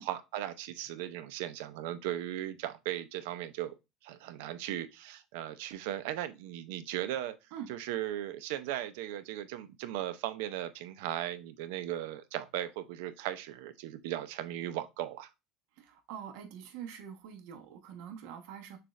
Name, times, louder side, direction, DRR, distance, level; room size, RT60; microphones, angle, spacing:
voice 1, 0.0-3.7 4.0-7.3 7.7-15.3, right 12 dB, 80° right, 0.6 m, -37 dB
voice 2, 15.8-18.8, right 8 dB, 65° right, 1.1 m, -45 dB
6.7 x 2.4 x 3.2 m
cardioid pair, 170°, 0 cm